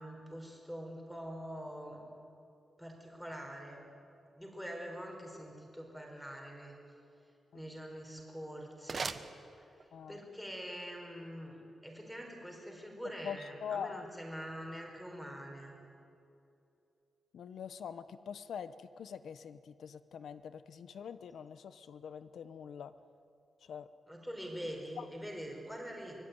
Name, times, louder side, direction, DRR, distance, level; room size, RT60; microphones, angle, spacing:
voice 1, 0.0-2.0 2.8-3.8 4.3-6.7 7.5-9.2 10.1-11.6 11.8-15.8 24.1-26.2, equal, ahead, 1 dB, 4.6 m, -44 dB
sound 1, 8.1-10.1, right 5 dB, 45° right, 1.0 m, -43 dB
voice 2, 13.2-14.1 17.3-22.9 23.7-23.9 25.0-25.1, left 7 dB, 90° left, 13 dB, 0.8 m, -44 dB
24.0 x 19.5 x 9.5 m, 2.7 s
wide cardioid pair, 145°, 0 cm